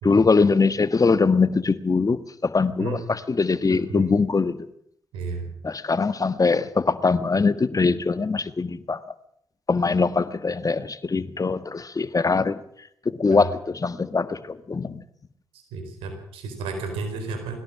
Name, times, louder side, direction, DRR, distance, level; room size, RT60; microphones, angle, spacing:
voice 1, 0.0-4.7 5.6-9.1 9.7-12.6 13.0-15.0, left 4 dB, 40° left, 13 dB, 1.5 m, -22 dB
voice 2, 15.7-17.6, right 4 dB, 90° right, 7 dB, 4.4 m, -32 dB
21.5 x 17.5 x 7.4 m, 0.69 s
supercardioid pair, 40°, 9 cm